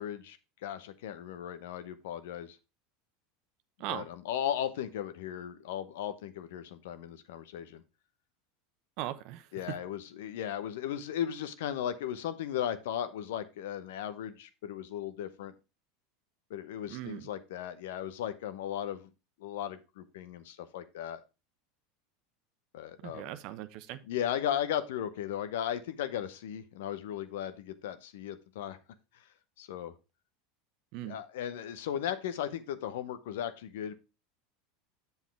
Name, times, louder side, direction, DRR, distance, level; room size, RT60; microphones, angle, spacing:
voice 1, 0.0-2.6 3.9-7.8 9.5-15.5 16.5-19.1 19.4-21.2 22.7-23.4 24.0-28.8 29.6-29.9 31.0-33.9, left 10 dB, 70° left, 12 dB, 0.9 m, -36 dB
voice 2, 9.0-9.4 16.9-17.3 23.0-24.0 30.9-31.2, right 14 dB, 55° right, 12 dB, 0.8 m, -39 dB
8.0 x 7.3 x 3.3 m, 0.28 s
hypercardioid pair, 85°, 0 cm